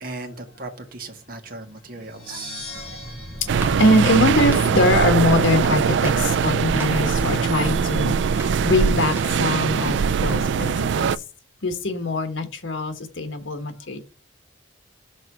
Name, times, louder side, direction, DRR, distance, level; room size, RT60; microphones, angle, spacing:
voice 1, 0.0-2.5, right 3 dB, 45° right, 1.5 m, -37 dB
sound 1, 2.0-4.9, left 1 dB, 30° left, 2.9 m, -41 dB
sound 2, 2.6-10.0, right 1 dB, 10° right, 1.2 m, -36 dB
sound 3, 3.5-11.2, right 6 dB, 70° right, 0.3 m, -21 dB
voice 2, 3.8-8.2 8.6-11.1 11.6-14.0, left 1 dB, 80° left, 1.5 m, -22 dB
6.3 x 3.9 x 6.1 m
head